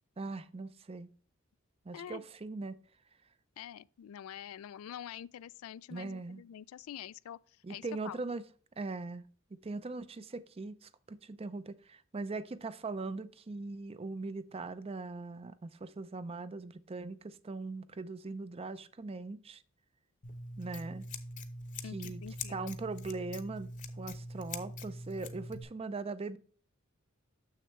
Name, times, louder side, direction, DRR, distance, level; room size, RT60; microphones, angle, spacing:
voice 1, 0.2-1.1 1.9-2.8 5.9-6.4 7.6-8.4 8.8-19.6 20.6-21.1 21.9-22.2 22.5-26.4, right 3 dB, 30° right, 0.5 m, -40 dB
voice 2, 1.9-2.3 3.6-8.2 21.8-22.8, left 9 dB, 90° left, 0.3 m, -46 dB
Scissors, 20.2-25.6, left 2 dB, 40° left, 0.8 m, -43 dB
6.9 x 6.6 x 3.1 m
head